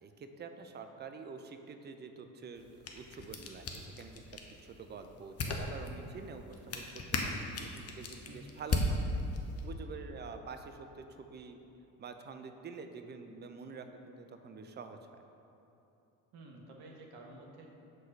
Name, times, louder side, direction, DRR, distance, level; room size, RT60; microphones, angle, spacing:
voice 1, 0.0-4.2 4.6-9.2 9.6-11.6 12.0-15.2, right 5 dB, 25° right, 7 dB, 0.5 m, -47 dB
sound 1, 2.5-9.7, left 2 dB, 35° left, 0.8 m, -38 dB
voice 2, 8.2-8.6 16.3-17.7, right 2 dB, 60° right, 0 dB, 1.1 m, -51 dB
5.1 x 3.9 x 5.9 m, 2.9 s
hypercardioid pair, 55°, 43 cm